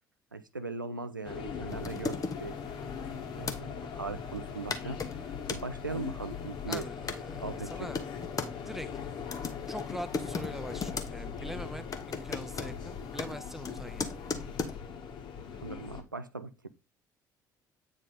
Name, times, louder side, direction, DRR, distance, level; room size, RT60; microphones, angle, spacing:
voice 1, 0.3-2.6 3.4-6.9 7.4-7.9 15.6-16.7, right 4 dB, 90° right, 0.4 m, -39 dB
sound 1, 1.2-16.0, left 6 dB, 50° left, 1.5 m, -40 dB
sound 2, 1.7-3.6 4.4-4.5 4.7-5.6 6.3-7.2 7.7-8.5 9.2-11.1 11.4-11.6 11.9-14.7, left 4 dB, 35° left, 1.2 m, -37 dB
voice 2, 6.7-8.0 8.7-8.9 9.7-14.1, equal, 5° right, 0.6 m, -43 dB
8.8 x 3.6 x 4.0 m
figure-of-eight pair, 50°, 10 cm